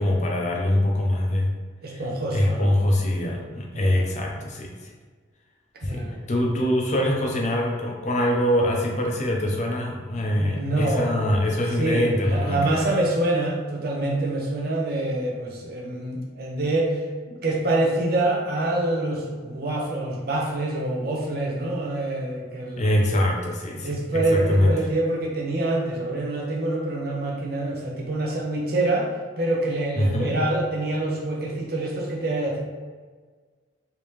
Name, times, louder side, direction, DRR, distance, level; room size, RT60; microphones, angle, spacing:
voice 1, 0.0-1.5 1.9-2.0 2.3-4.9 5.8-6.0 6.3-12.9 22.8-24.7 30.0-30.3, left 1 dB, 40° left, 0 dB, 0.5 m, -23 dB
voice 2, 1.8-2.7 3.7-4.1 5.8-6.2 10.4-11.1 11.8-17.0 17.3-22.9 23.8-29.1 29.4-32.6, right 2 dB, 55° right, -1 dB, 0.7 m, -26 dB
3.4 x 2.8 x 3.1 m, 1.5 s
head